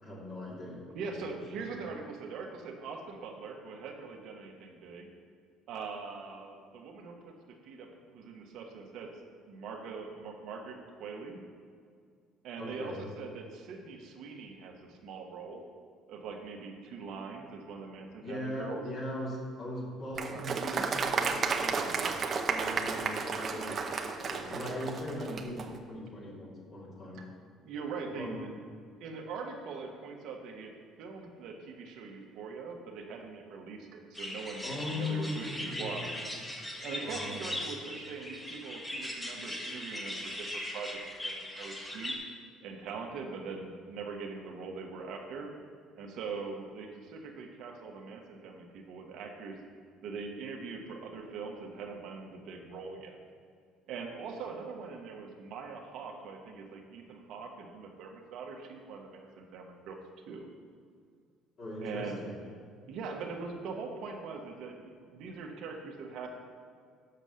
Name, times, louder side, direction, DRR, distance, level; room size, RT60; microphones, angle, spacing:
voice 1, 0.0-1.4 1.7-1.8 12.6-13.0 18.2-22.1 22.4-27.3 28.2-28.4 34.6-36.2 37.0-37.4 61.6-62.4, left 1 dB, 50° left, -5 dB, 2.3 m, -39 dB
voice 2, 0.9-5.1 5.7-9.1 9.5-11.4 12.4-15.6 16.1-18.8 25.3-25.5 27.1-27.2 27.6-28.5 29.0-36.1 36.8-42.1 42.6-45.5 45.9-49.6 50.0-53.2 53.9-60.0 60.3-60.5 61.8-62.2 62.9-66.3, right 4 dB, 70° right, 2 dB, 1.2 m, -42 dB
Applause, 20.2-25.7, right 5 dB, 45° right, 0.7 m, -32 dB
sound 1, 34.1-42.2, left 1 dB, 15° left, 1.5 m, -39 dB
6.8 x 5.4 x 6.4 m, 2.2 s
supercardioid pair, 85°, 0 cm